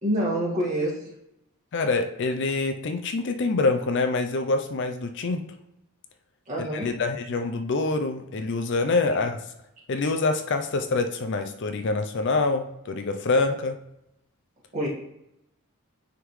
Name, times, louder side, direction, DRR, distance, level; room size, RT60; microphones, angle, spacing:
voice 1, 0.0-1.1 6.5-6.9 14.7-14.9, right 1 dB, 35° right, -5 dB, 1.8 m, -26 dB
voice 2, 1.7-5.4 6.6-9.4 9.9-13.8, left 3 dB, 55° left, 6 dB, 0.5 m, -26 dB
9.4 x 3.6 x 3.1 m, 0.84 s
head